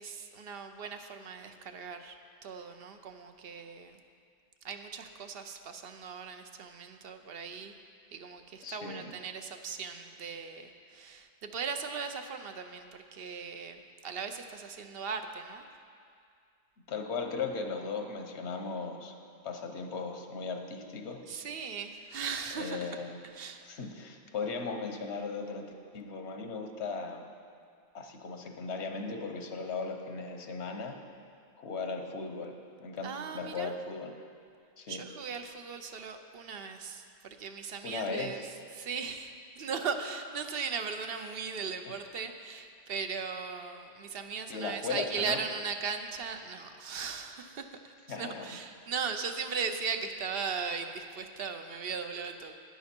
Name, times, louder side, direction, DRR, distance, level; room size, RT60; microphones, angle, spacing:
voice 1, 0.0-2.2 2.4-4.0 4.6-7.7 8.1-15.6 21.3-22.9 23.2-23.6 33.0-33.7 34.9-38.4 38.7-52.5, right 5 dB, 65° right, 7 dB, 0.9 m, -38 dB
voice 2, 8.6-9.1 16.9-19.1 19.4-21.2 22.5-23.2 23.6-25.6 25.9-27.3 27.9-31.0 31.6-32.5 32.8-34.1 34.8-35.0 37.8-38.5 41.9-42.0 44.5-45.4 48.1-48.6, left 4 dB, 90° left, 5 dB, 1.2 m, -37 dB
11.5 x 9.6 x 4.4 m, 2.3 s
omnidirectional pair, 1.1 m